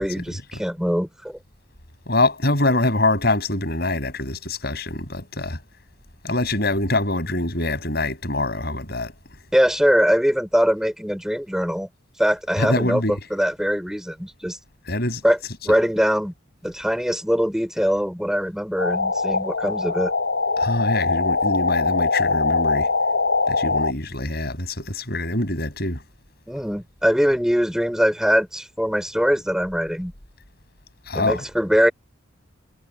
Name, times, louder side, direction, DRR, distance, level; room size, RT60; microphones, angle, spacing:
voice 1, 0.0-1.4 9.5-11.9 12.2-14.6 15.2-15.4 15.6-16.3 16.6-20.1 26.5-30.1 31.1-31.9, equal, 5° right, 4.8 m, -22 dB
voice 2, 2.1-5.6 6.2-9.1 12.6-13.1 14.9-15.2 20.6-22.9 23.5-26.0 31.1-31.4, left 2 dB, 50° left, 6.7 m, -24 dB
sound 1, 18.8-23.9, left 4 dB, 70° left, 3.3 m, -22 dB
head